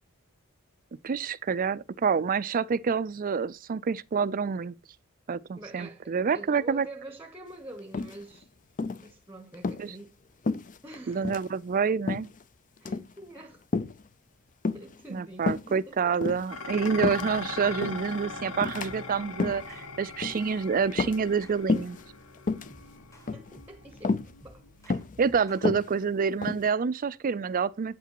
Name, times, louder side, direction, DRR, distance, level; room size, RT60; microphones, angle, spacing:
voice 1, 1.0-4.8 5.3-6.9 9.8-9.9 11.1-12.3 15.1-22.0 25.2-28.0, right 6 dB, 40° right, 0.4 m, -28 dB
voice 2, 5.6-8.5 9.0-10.2 10.8-11.3 12.8-13.6 14.7-16.2 22.8-22.9 23.3-24.6, right 1 dB, 10° right, 0.9 m, -46 dB
sound 1, 7.9-8.4 8.8-9.1 9.5-9.8 10.4-11.0 11.2-11.5 12.1-12.4 12.8-13.1 13.7-14.0 14.6-15.0 15.4-15.7 16.1-17.4 17.8-18.1 18.6-18.9 19.3-19.7 20.2-20.5 20.9-21.4 21.7-22.0 22.4-22.7 23.3-23.6 24.0-24.3 24.9-25.2 25.5-26.7, left 3 dB, 35° left, 0.5 m, -30 dB
Dishes pots and pans, 16.5-25.3, left 3 dB, 75° left, 1.4 m, -41 dB
sound 2, 19.5-19.9 20.8-21.6 22.5-23.9 24.2-25.7, equal, 15° left, 1.1 m, -55 dB
8.2 x 8.1 x 2.9 m
head